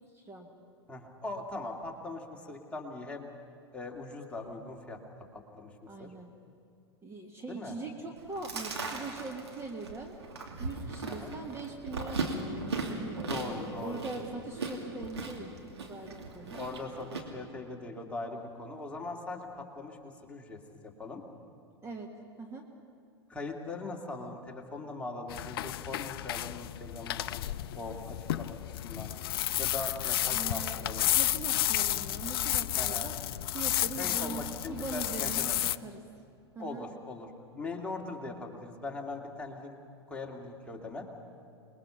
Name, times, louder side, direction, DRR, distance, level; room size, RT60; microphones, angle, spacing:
voice 1, 0.1-0.5 5.9-6.3 7.0-10.2 10.6-16.6 21.8-22.6 30.3-33.2 33.5-34.4 34.7-35.6 35.8-36.1 36.5-36.9, right 3 dB, 20° right, 2 dB, 1.7 m, -42 dB
voice 2, 0.9-3.3 3.7-5.0 5.3-6.1 7.5-7.7 11.0-11.3 13.3-14.4 16.5-21.2 23.3-27.4 27.7-28.6 28.8-29.1 29.6-31.1 32.8-33.1 34.0-35.6 36.6-39.7 40.1-41.1, left 2 dB, 10° left, -1 dB, 2.6 m, -41 dB
Chewing mastication, 8.2-17.2, right 3 dB, 75° right, 2.8 m, -38 dB
sound 1, 25.3-35.8, left 13 dB, 60° left, 0.5 m, -32 dB
27.5 x 21.0 x 5.8 m, 2.5 s
figure-of-eight pair, 95°, 14 cm